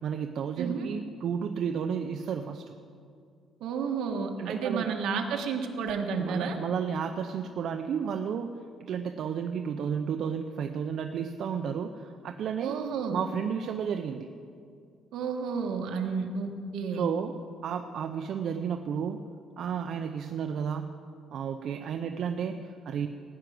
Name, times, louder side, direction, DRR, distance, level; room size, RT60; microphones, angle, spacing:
voice 1, 0.0-2.7 4.4-4.9 6.2-12.7 13.1-14.3 16.9-17.4 17.6-19.2 19.6-20.9 21.3-23.1, right 7 dB, 55° right, 6 dB, 0.6 m, -32 dB
voice 2, 3.6-6.6 12.6-13.2 15.1-17.1, right 5 dB, 75° right, 3 dB, 1.5 m, -31 dB
16.5 x 6.0 x 9.3 m, 2.3 s
cardioid pair, 155°, 0 cm